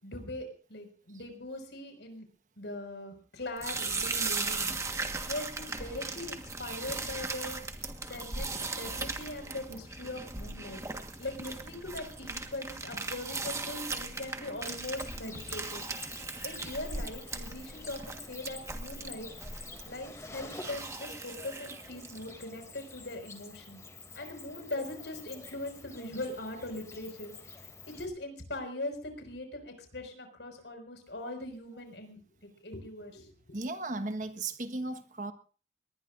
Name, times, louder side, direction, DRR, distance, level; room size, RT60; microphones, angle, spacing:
voice 1, 0.0-2.3 2.6-4.7 5.3-7.6 8.1-8.5 8.8-10.8 11.2-15.8 16.4-19.3 19.8-23.8 24.2-27.3 27.9-33.6, left 1 dB, 80° left, 5 dB, 5.6 m, -41 dB
sound 1, 3.6-22.3, right 3 dB, 15° right, 1.5 m, -38 dB
Cricket, 14.6-28.0, left 3 dB, 20° left, 2.7 m, -48 dB
voice 2, 33.5-35.3, right 2 dB, 45° right, 9 dB, 1.5 m, -35 dB
22.0 x 20.0 x 2.6 m, 0.39 s
head